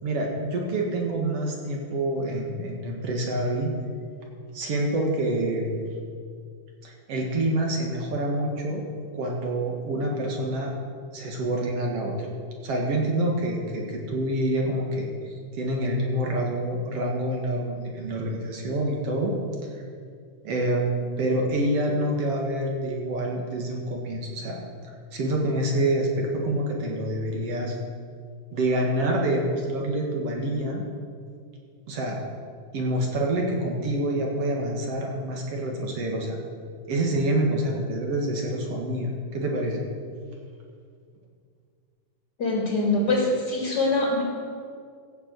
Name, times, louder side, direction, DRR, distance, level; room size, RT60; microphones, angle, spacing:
voice 1, 0.0-3.7 4.5-5.8 6.8-8.8 9.1-10.7 11.1-12.2 12.6-19.3 20.4-24.6 25.1-27.8 28.5-30.8 31.9-32.2 32.7-36.4 36.9-39.8, right 1 dB, 55° right, -1 dB, 2.7 m, -27 dB
voice 2, 42.4-44.2, left 2 dB, 35° left, -2 dB, 2.9 m, -23 dB
15.5 x 6.8 x 8.0 m, 2.2 s
omnidirectional pair, 3.5 m